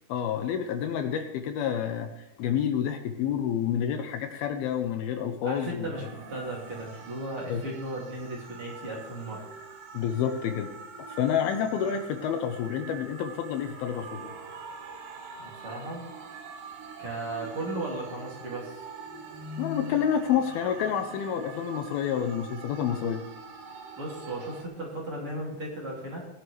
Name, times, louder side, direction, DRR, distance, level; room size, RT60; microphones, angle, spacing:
voice 1, 0.1-5.9 7.5-7.6 9.9-10.7 11.0-14.3 19.6-23.2, left 8 dB, 80° left, 6 dB, 2.5 m, -29 dB
voice 2, 5.4-9.5 15.4-16.1 17.0-18.8 24.0-26.3, right 1 dB, 35° right, -3 dB, 3.0 m, -36 dB
sound 1, 5.9-24.6, right 3 dB, 60° right, 2.8 m, -44 dB
18.0 x 11.0 x 3.3 m, 0.86 s
omnidirectional pair, 4.7 m